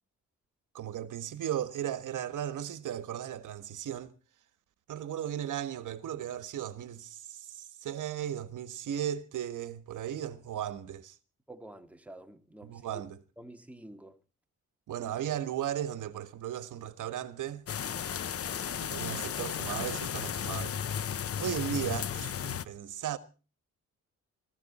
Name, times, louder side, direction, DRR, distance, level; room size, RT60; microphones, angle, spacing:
voice 1, 0.7-4.1 4.9-11.2 12.6-13.2 14.9-17.7 18.8-20.8 21.4-23.2, right 10 dB, 75° right, 1.5 m, -36 dB
voice 2, 11.5-12.8 13.4-14.2, right 1 dB, 5° right, 2.0 m, -49 dB
sound 1, 17.7-22.7, left 8 dB, 50° left, 0.9 m, -34 dB
20.0 x 15.0 x 4.3 m
cardioid pair, 120°, 31 cm